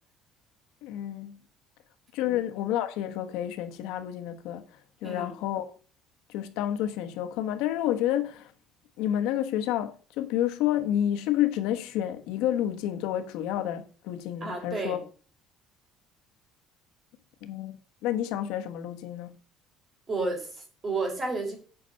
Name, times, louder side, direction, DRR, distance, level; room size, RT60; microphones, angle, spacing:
voice 1, 0.8-1.4 2.1-4.7 5.0-5.7 6.3-8.5 9.0-15.0 17.4-19.3, left 11 dB, 80° left, 1.3 m, -29 dB
voice 2, 14.4-15.0 20.1-21.6, right 3 dB, 25° right, 3.9 m, -31 dB
8.4 x 5.8 x 6.4 m
cardioid pair, 165°, 0 cm